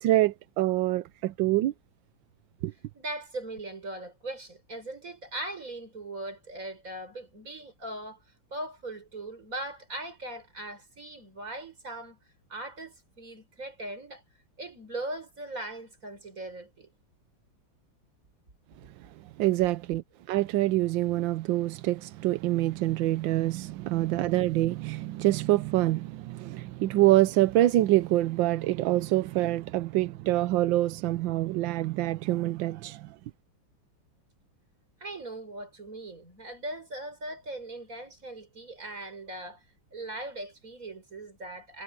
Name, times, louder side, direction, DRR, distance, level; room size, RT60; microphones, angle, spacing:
voice 1, 0.0-1.7 2.6-2.7 19.4-33.1, right 15 dB, 85° right, 1.4 m, -26 dB
voice 2, 2.9-8.2 8.5-12.2 12.5-14.2 14.6-16.9 35.0-39.6 39.9-41.8, right 1 dB, 45° right, 5.9 m, -39 dB
omnidirectional pair, 2.0 m